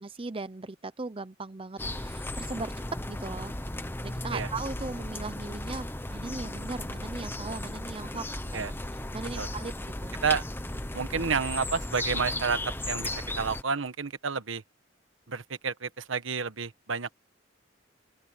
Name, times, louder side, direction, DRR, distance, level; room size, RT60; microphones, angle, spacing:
voice 1, 0.0-2.7 3.1-3.5 4.0-8.6 9.1-10.3, right 3 dB, 30° right, 0.7 m, -38 dB
sound 1, 1.8-13.6, left 1 dB, 10° left, 0.9 m, -35 dB
voice 2, 10.9-12.6 12.9-14.6 15.3-17.1, right 5 dB, 85° right, 1.2 m, -30 dB
open air
head